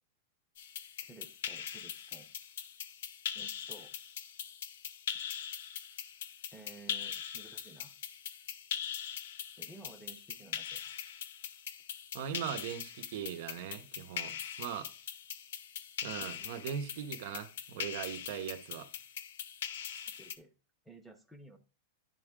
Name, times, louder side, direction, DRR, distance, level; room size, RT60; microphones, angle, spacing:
sound 1, 0.6-20.4, left 9 dB, 75° left, 0.6 m, -42 dB
voice 1, 1.1-2.3 3.3-4.0 6.5-7.9 9.6-10.8 16.4-16.6 20.2-20.5 20.8-21.6, right 2 dB, ahead, 0.8 m, -54 dB
voice 2, 12.1-14.9 16.0-18.9, right 9 dB, 60° right, 0.8 m, -40 dB
10.5 x 3.6 x 3.6 m
supercardioid pair, 155°, 0 cm